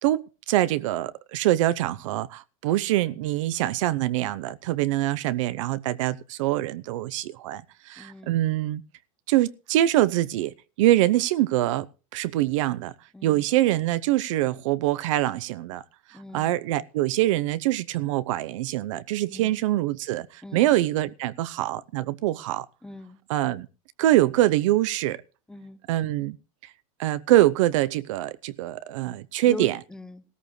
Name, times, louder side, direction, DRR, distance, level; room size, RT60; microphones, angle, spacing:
voice 1, 0.0-8.8 9.3-11.9 12.1-12.9 13.2-15.8 16.1-22.7 23.3-23.7 24.0-25.2 25.9-26.4 27.0-29.8, right 15 dB, 60° right, 0.8 m, -24 dB
voice 2, 8.0-8.4 13.1-13.5 16.1-16.6 19.3-19.6 20.4-20.7 22.8-23.2 25.5-25.8 29.4-30.2, left 2 dB, 5° left, 0.7 m, -41 dB
16.5 x 13.5 x 3.2 m
supercardioid pair, 165°, 18 cm